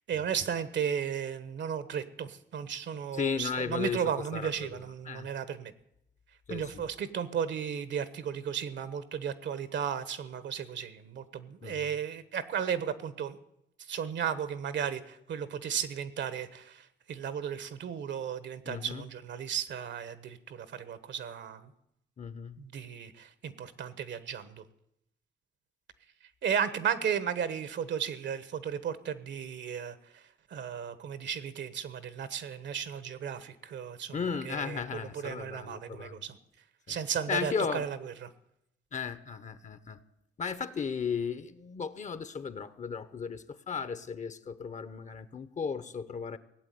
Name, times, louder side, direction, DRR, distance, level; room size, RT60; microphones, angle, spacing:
voice 1, 0.1-5.7 6.5-13.4 13.9-21.7 22.6-24.6 26.4-30.2 30.5-36.4 36.9-38.3, right 8 dB, 65° right, 14 dB, 1.2 m, -35 dB
voice 2, 3.1-4.0 4.3-4.7 5.1-5.3 6.5-6.8 11.6-11.9 18.7-19.0 22.2-22.5 34.1-36.2 37.3-37.9 38.9-40.0 40.4-46.4, left 6 dB, 40° left, 13 dB, 1.0 m, -35 dB
17.5 x 7.9 x 9.3 m, 0.82 s
cardioid pair, 90°, 20 cm